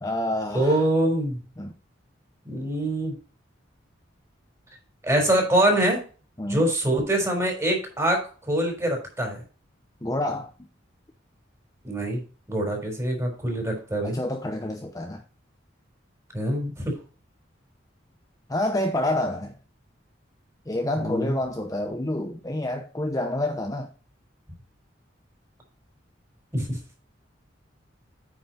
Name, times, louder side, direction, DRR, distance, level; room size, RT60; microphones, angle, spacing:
voice 1, 0.0-0.9 1.6-1.7 6.4-6.7 10.0-10.5 14.0-15.2 18.5-19.5 20.7-23.9, left 1 dB, 20° left, 0.8 m, -28 dB
voice 2, 0.5-1.4 2.5-3.1 5.0-6.0 6.5-9.4 11.8-12.2 12.5-14.2 16.3-16.9 21.0-21.4 26.5-26.8, right 1 dB, 15° right, 4.0 m, -24 dB
9.2 x 6.1 x 4.2 m
head